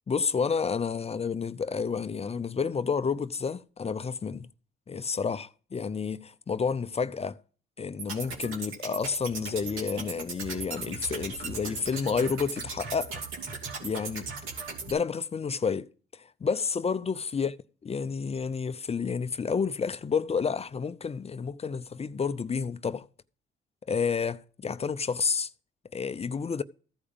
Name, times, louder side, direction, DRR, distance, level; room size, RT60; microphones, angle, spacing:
voice 1, 0.1-4.5 4.9-7.4 7.8-13.2 13.8-14.3 14.9-17.5 17.8-23.1 23.9-25.5 25.9-26.6, left 5 dB, 30° left, 0.6 m, -30 dB
sound 1, 8.0-14.9, right 4 dB, 80° right, 2.7 m, -37 dB
14.5 x 4.9 x 7.1 m
supercardioid pair, 70°, 21 cm